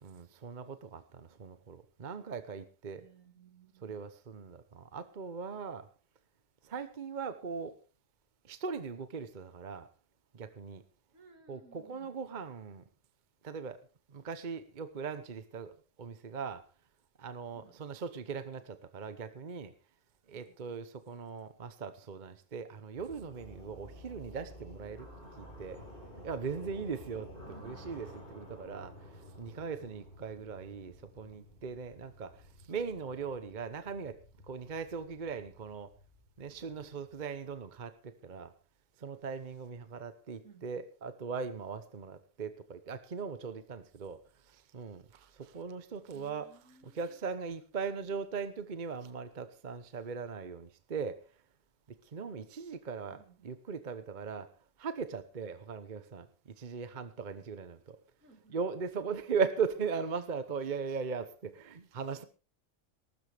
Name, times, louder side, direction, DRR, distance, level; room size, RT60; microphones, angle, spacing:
voice 1, 0.0-3.0 3.8-5.9 6.6-7.8 8.4-9.9 10.3-10.8 11.5-12.8 13.4-13.8 14.1-16.7 17.2-19.7 20.3-25.1 25.4-25.8 26.2-34.2 34.5-35.9 36.4-38.5 39.0-46.5 46.8-51.2 51.9-54.5 54.8-58.0 58.5-62.2, right 5 dB, 40° right, 12 dB, 1.0 m, -39 dB
voice 2, 3.0-4.0 11.1-12.1 17.5-17.8 20.4-20.5 27.5-28.0 40.4-40.9 46.1-47.2 53.0-53.5 58.2-58.6, right 4 dB, 75° right, 5 dB, 2.9 m, -59 dB
sound 1, 22.9-37.8, equal, 40° left, 4.5 m, -52 dB
19.5 x 12.5 x 3.4 m, 0.33 s
omnidirectional pair, 1.4 m